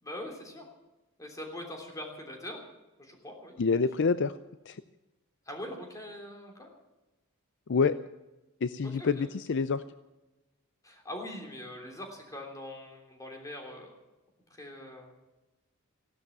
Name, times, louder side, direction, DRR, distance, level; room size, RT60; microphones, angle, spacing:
voice 1, 0.0-0.7 1.2-2.6 3.0-3.6 5.4-6.7 8.8-9.3 10.8-13.9 14.5-15.1, left 1 dB, 15° left, 2 dB, 3.4 m, -42 dB
voice 2, 3.6-4.4 4.7-4.8 7.7-8.0 8.6-9.8, left 5 dB, 55° left, 14 dB, 0.5 m, -27 dB
16.0 x 12.5 x 7.3 m, 1.1 s
head